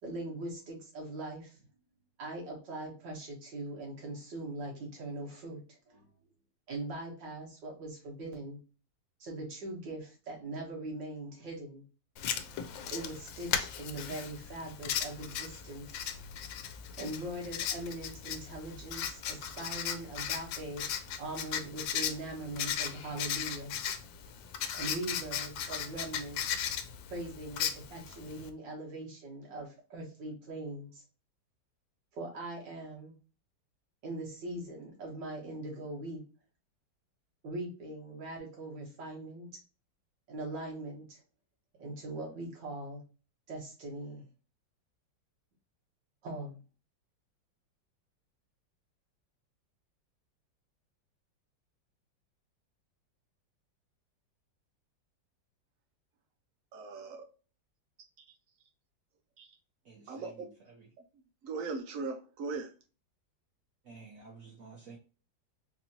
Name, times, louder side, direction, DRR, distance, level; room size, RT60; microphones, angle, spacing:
voice 1, 0.0-1.6 2.2-6.1 6.7-8.6 9.2-11.8 12.9-16.1 17.0-23.9 24.7-26.6 27.1-31.0 32.1-33.1 34.0-36.2 37.4-39.5 40.3-41.2 41.8-43.0 43.5-44.3 46.2-46.6, right 1 dB, 75° right, 2.2 m, -41 dB
Writing, 12.2-28.5, left 9 dB, 85° left, 1.3 m, -37 dB
voice 2, 56.7-57.3 60.1-60.5 61.4-62.7, right 4 dB, 90° right, 0.7 m, -38 dB
voice 3, 59.8-60.9 63.8-65.0, right 4 dB, 60° right, 1.1 m, -52 dB
4.3 x 2.8 x 2.8 m
omnidirectional pair, 2.0 m